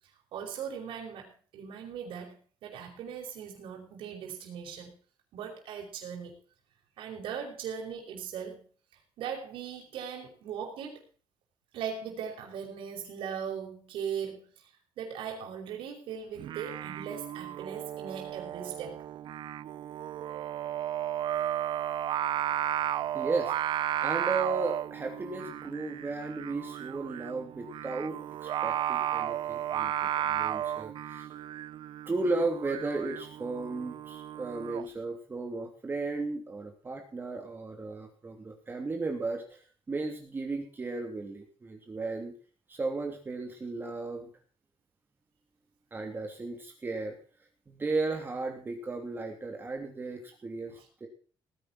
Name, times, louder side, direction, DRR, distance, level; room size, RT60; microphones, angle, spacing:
voice 1, 0.3-2.4 2.6-4.9 5.3-6.4 7.0-8.7 8.9-11.1 11.7-14.7 15.0-19.1 50.8-50.9, right 7 dB, 80° right, 0 dB, 5.5 m, -39 dB
Singing, 16.4-34.9, right 11 dB, 65° right, 0.7 m, -34 dB
voice 2, 23.1-23.5 24.0-31.3 32.1-42.3 42.7-44.3 45.9-47.2 47.7-51.1, right 3 dB, 25° right, 3 dB, 2.9 m, -35 dB
18.5 x 11.0 x 4.2 m, 0.41 s
cardioid pair, 140°, 9 cm